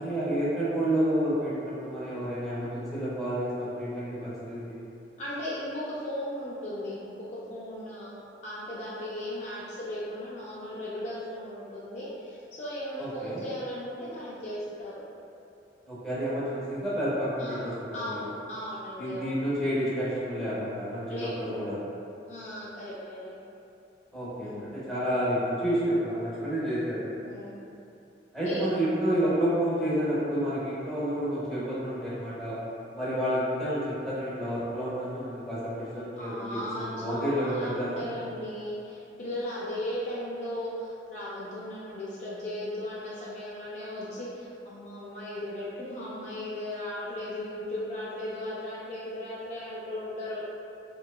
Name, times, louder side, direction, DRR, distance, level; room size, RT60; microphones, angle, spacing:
voice 1, 0.0-4.8 13.0-13.5 15.9-18.2 19.0-21.9 24.1-27.0 28.3-32.6 32.9-38.1, equal, ahead, -11 dB, 0.6 m, -30 dB
voice 2, 5.2-15.0 17.4-19.4 21.1-21.3 22.3-23.3 24.4-24.8 27.2-27.6 28.4-28.7 36.2-50.5, left 1 dB, 40° left, -8 dB, 0.3 m, -37 dB
2.7 x 2.2 x 2.2 m, 2.7 s
head